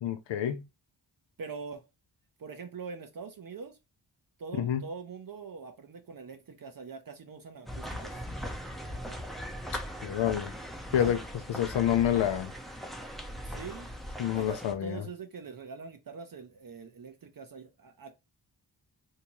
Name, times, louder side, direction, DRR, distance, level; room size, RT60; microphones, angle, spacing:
voice 1, 0.0-0.6 4.6-4.8 10.0-10.5 10.9-11.2 11.5-12.5 14.2-15.0, left 10 dB, 90° left, 0.5 m, -28 dB
voice 2, 1.4-1.8 2.4-3.8 4.4-8.3 8.9-9.2 11.0-11.1 13.4-13.9 14.3-18.1, right 5 dB, 50° right, 0.6 m, -43 dB
sound 1, 7.7-14.7, equal, ahead, 0.6 m, -40 dB
3.5 x 2.8 x 2.9 m
wide cardioid pair, 105°, 43 cm